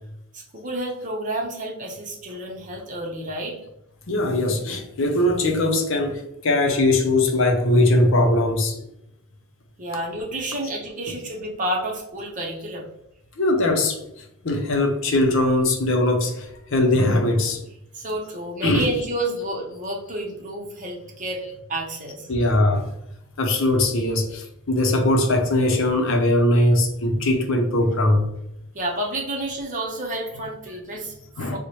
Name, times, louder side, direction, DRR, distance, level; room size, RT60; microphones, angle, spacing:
voice 1, 0.3-3.6 9.8-12.8 17.9-21.4 21.7-22.3 28.7-31.6, right 1 dB, 35° right, 0.7 m, -30 dB
voice 2, 4.1-8.8 13.4-17.6 18.6-18.9 22.3-22.9 23.4-28.3 31.4-31.6, left 1 dB, 60° left, 0.6 m, -20 dB
4.5 x 2.1 x 2.9 m
head